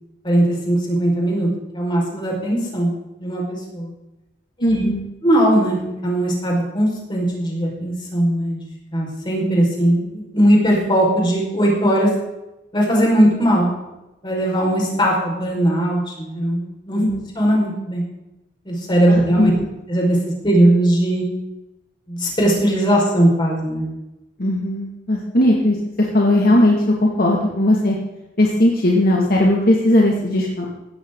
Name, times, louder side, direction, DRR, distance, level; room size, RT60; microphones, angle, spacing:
voice 1, 0.2-1.5 1.7-2.9 3.2-3.9 4.6-4.8 5.2-8.6 8.9-12.1 12.7-13.7 14.2-17.0 17.4-18.0 18.7-19.5 19.9-20.2 20.4-21.2 22.1-23.9, right 1 dB, 25° left, -2 dB, 5.3 m, -19 dB
voice 2, 4.6-5.0 17.0-17.2 19.1-19.6 24.4-28.0 28.4-30.7, left 1 dB, 55° left, -2 dB, 2.3 m, -17 dB
17.0 x 13.5 x 4.0 m, 0.97 s
head